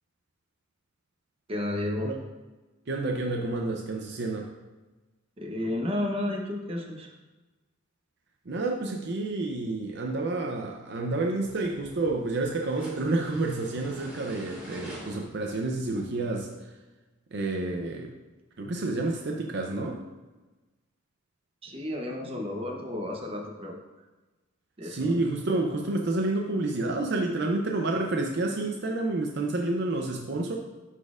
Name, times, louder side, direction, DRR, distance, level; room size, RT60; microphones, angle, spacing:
voice 1, 1.5-2.1 5.4-7.1 21.6-23.8 24.8-25.3, left 1 dB, 30° right, 1 dB, 0.8 m, -32 dB
voice 2, 2.9-4.5 8.5-16.7 17.3-18.1 18.6-20.0 24.8-30.6, right 2 dB, 55° right, 1 dB, 0.6 m, -29 dB
sound 1, 11.4-16.5, equal, 5° right, 1.7 m, -47 dB
11.5 x 4.2 x 2.4 m, 1.2 s
head